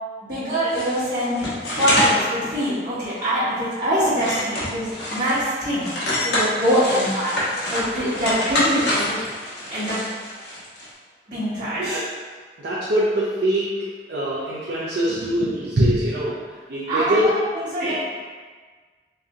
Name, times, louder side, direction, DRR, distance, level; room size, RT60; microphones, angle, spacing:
voice 1, 0.2-1.5 1.7-7.4 7.7-9.2 9.7-10.0 11.3-12.0 16.8-17.9, equal, 45° right, -16 dB, 1.3 m, -24 dB
sound 1, 0.7-2.2 2.6-2.7 3.2-3.4 3.7-5.5 5.8-10.9, left 1 dB, 80° left, 1.1 m, -26 dB
voice 2, 12.6-13.8 14.1-16.4 16.7-17.3 17.8-17.9, right 1 dB, 70° right, -8 dB, 0.6 m, -23 dB
3.2 x 2.7 x 3.6 m, 1.5 s
head